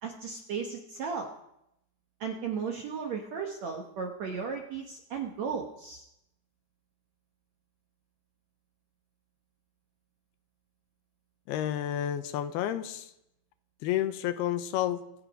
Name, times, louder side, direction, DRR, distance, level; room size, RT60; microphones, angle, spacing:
voice 1, 0.0-1.3 2.2-6.0, right 6 dB, 70° right, 2 dB, 1.7 m, -35 dB
voice 2, 11.5-13.1 13.8-15.0, left 11 dB, 80° left, 10 dB, 2.7 m, -30 dB
25.0 x 8.7 x 5.3 m, 0.82 s
omnidirectional pair, 4.6 m